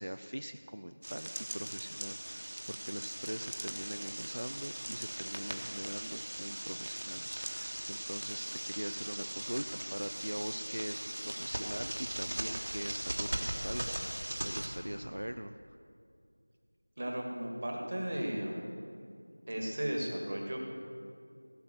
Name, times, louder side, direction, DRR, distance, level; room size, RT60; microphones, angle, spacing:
voice 1, 0.0-15.6, equal, 70° right, 9 dB, 0.5 m, -42 dB
sound 1, 1.0-14.7, right 1 dB, 45° right, 1.3 m, -39 dB
voice 2, 17.0-18.7 19.5-20.6, right 1 dB, 30° right, 0 dB, 1.5 m, -35 dB
16.0 x 5.9 x 7.7 m, 2.4 s
figure-of-eight pair, 175°, 0 cm